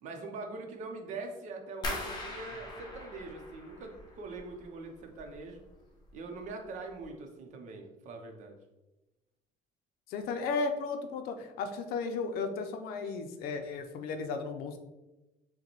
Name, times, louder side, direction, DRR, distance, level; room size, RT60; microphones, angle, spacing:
voice 1, 0.0-5.6 6.1-8.6, right 3 dB, 50° right, 3 dB, 0.7 m, -43 dB
sound 1, 1.8-4.7 5.0-5.7 6.0-6.5 6.9-7.0, left 1 dB, 30° left, 0.7 m, -41 dB
voice 2, 10.1-14.8, left 4 dB, 80° left, 6 dB, 0.5 m, -34 dB
6.5 x 2.2 x 3.0 m, 1.0 s
cardioid pair, 175°, 15 cm